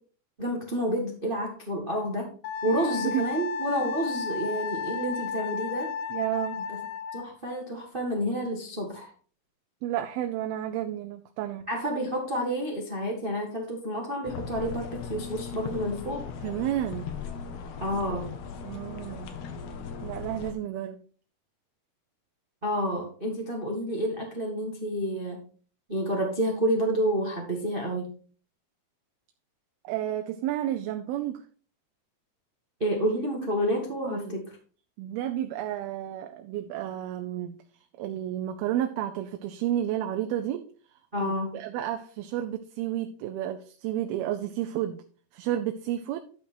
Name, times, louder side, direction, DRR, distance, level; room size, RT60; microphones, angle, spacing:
voice 1, 0.4-2.3 2.6-5.9 7.1-9.1 11.7-16.2 17.8-18.3 22.6-25.4 25.9-28.1 32.8-34.6 41.1-41.6, equal, 45° right, 0 dB, 0.6 m, -29 dB
Wind instrument woodwind instrument, 2.4-7.3, left 6 dB, 70° left, 2.5 m, -33 dB
voice 2, 6.1-6.6 9.8-11.7 16.4-17.1 18.6-19.4 20.0-21.0 29.8-31.4 34.0-34.4 35.0-37.6 38.0-40.7 41.2-45.0 45.3-46.2, right 12 dB, 80° right, 6 dB, 2.5 m, -31 dB
sound 1, 14.2-20.5, left 6 dB, 85° left, 3.2 m, -38 dB
11.5 x 5.8 x 4.4 m, 0.41 s
omnidirectional pair, 4.4 m